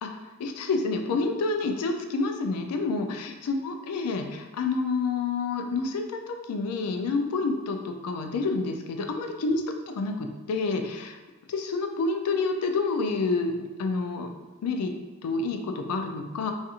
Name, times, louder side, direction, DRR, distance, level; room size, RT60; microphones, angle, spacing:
voice 1, 0.0-9.6 10.0-11.2 11.5-14.3 14.6-14.9 15.2-16.5, left 3 dB, 85° left, 5 dB, 0.3 m, -28 dB
2.5 x 2.4 x 2.7 m, 1.2 s
head